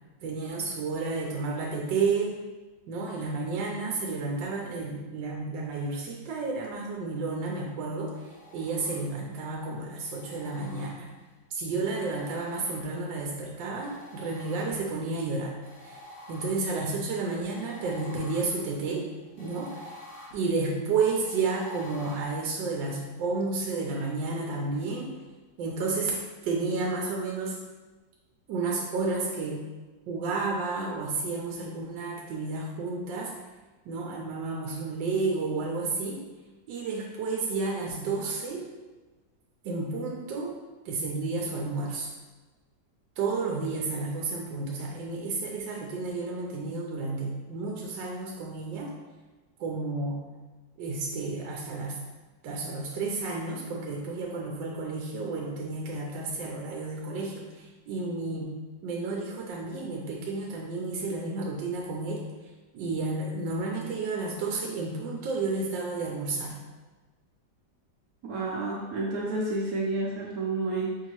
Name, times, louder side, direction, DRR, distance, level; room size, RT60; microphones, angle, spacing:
voice 1, 0.2-2.4 2.9-8.1 8.5-11.1 11.5-15.6 15.8-16.0 16.3-19.1 19.4-20.0 20.3-25.1 25.6-26.1 26.4-27.6 28.5-29.6 30.1-33.3 33.8-36.2 36.7-38.7 39.6-40.5 40.8-42.1 43.2-48.9 49.6-50.2 50.8-52.0 52.4-58.6 58.8-62.2 62.7-66.6, right 3 dB, 80° right, -1 dB, 1.3 m, -31 dB
sound 1, 8.1-9.4 10.0-11.3 11.9-13.2 13.7-15.1 15.6-22.2, left 1 dB, 85° left, 1.8 m, -49 dB
voice 2, 68.3-71.0, right 2 dB, 65° right, -4 dB, 1.0 m, -30 dB
5.3 x 2.7 x 3.0 m, 1.2 s
omnidirectional pair, 1.9 m